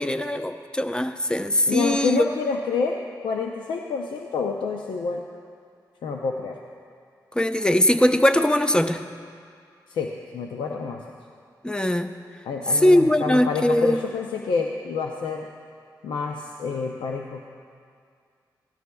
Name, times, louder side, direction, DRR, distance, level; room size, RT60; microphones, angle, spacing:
voice 1, 0.0-2.3 7.4-9.0 11.6-12.1 12.7-14.0, left 1 dB, 10° left, 8 dB, 0.7 m, -20 dB
voice 2, 1.7-5.2 6.0-6.6 9.9-11.0 12.5-15.5 16.0-17.5, left 5 dB, 85° left, 2 dB, 0.6 m, -28 dB
17.5 x 12.5 x 2.3 m, 2.2 s
cardioid pair, 50°, 8 cm